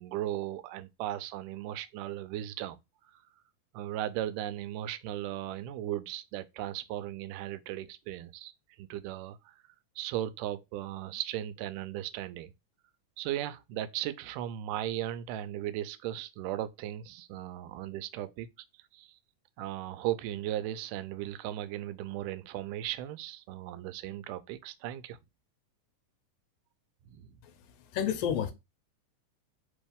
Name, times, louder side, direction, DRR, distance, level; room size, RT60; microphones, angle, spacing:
voice 1, 0.0-2.8 3.7-8.5 8.8-9.6 10.0-12.5 13.2-18.5 18.9-19.2 19.6-25.2 27.1-27.3, right 13 dB, 85° right, 2.1 m, -37 dB
voice 2, 27.4-28.5, left 9 dB, 80° left, 1.4 m, -32 dB
4.5 x 3.1 x 3.4 m
omnidirectional pair, 3.7 m